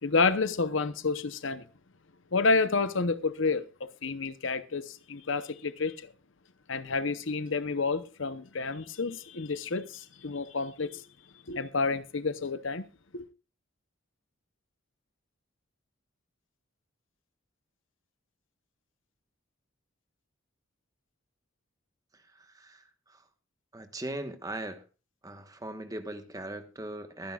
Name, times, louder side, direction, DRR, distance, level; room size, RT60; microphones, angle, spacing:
voice 1, 0.0-1.6 2.3-6.1 6.7-11.0 11.5-12.9 13.1-13.2, left 4 dB, 65° left, 0.8 m, -29 dB
voice 2, 23.7-24.8 25.2-27.3, right 1 dB, 15° right, 1.2 m, -39 dB
23.0 x 10.5 x 2.4 m
head